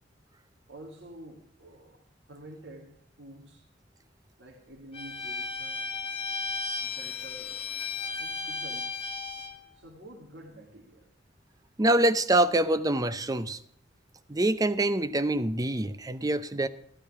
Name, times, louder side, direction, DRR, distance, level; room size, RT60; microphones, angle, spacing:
voice 1, 0.7-3.6 4.4-5.9 6.8-7.6 8.2-9.0 9.7-11.1, right 1 dB, 65° right, 2.3 m, -49 dB
Bowed string instrument, 4.9-9.6, left 4 dB, 30° left, 1.3 m, -35 dB
voice 2, 11.8-13.6 14.3-16.7, right 1 dB, 20° right, 0.6 m, -25 dB
13.5 x 12.5 x 4.9 m
head